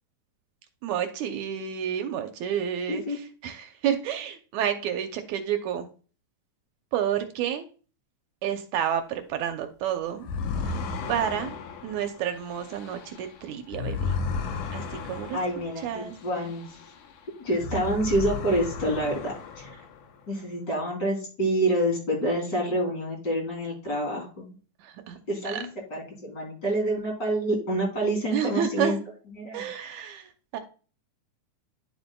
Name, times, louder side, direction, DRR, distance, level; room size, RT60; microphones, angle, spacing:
voice 1, 0.8-5.9 6.9-7.7 8.4-10.3 10.6-10.8 11.1-11.6 11.8-14.2 14.7-15.4 15.8-16.1 24.8-25.2 25.5-25.6 28.3-29.0 29.5-30.6, right 9 dB, 75° right, 7 dB, 2.1 m, -30 dB
sound 1, 10.2-17.1 17.5-20.2, left 4 dB, 75° left, 2.4 m, -34 dB
voice 2, 15.3-16.8 17.4-19.7 20.3-24.5 25.3-29.0 29.3-29.7, right 1 dB, 35° left, -2 dB, 3.6 m, -27 dB
11.0 x 7.0 x 2.3 m, 0.38 s
omnidirectional pair, 3.5 m